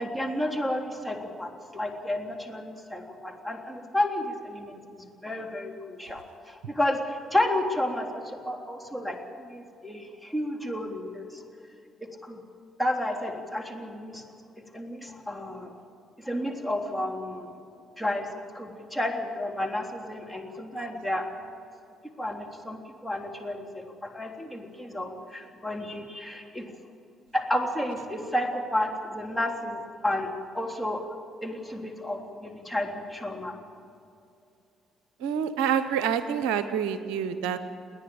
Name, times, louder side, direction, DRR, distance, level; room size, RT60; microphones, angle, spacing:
voice 1, 0.0-11.4 12.2-12.4 12.8-14.2 14.7-15.7 16.2-17.5 18.0-18.3 18.5-21.3 22.2-26.6 27.3-30.3 30.5-33.5, left 1 dB, ahead, 1 dB, 3.4 m, -31 dB
voice 2, 35.2-37.6, right 8 dB, 80° right, 11 dB, 0.8 m, -27 dB
30.0 x 10.0 x 8.7 m, 2.5 s
hypercardioid pair, 50°, 0 cm